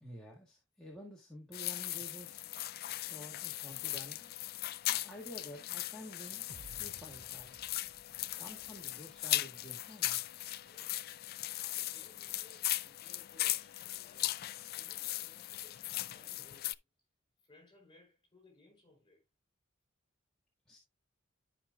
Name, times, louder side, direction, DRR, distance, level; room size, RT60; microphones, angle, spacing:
voice 1, 0.0-2.5 3.1-4.3 4.9-6.5 6.8-7.6 8.4-10.2 20.7-20.8, equal, 5° left, 1.6 m, -50 dB
sound 1, 1.5-16.7, left 15 dB, 50° left, 0.4 m, -38 dB
sound 2, 6.5-9.8, right 3 dB, 35° right, 0.5 m, -58 dB
voice 2, 8.2-8.8 10.6-11.1 11.8-16.9 17.4-19.3, left 2 dB, 25° left, 4.4 m, -63 dB
13.0 x 5.2 x 2.3 m
head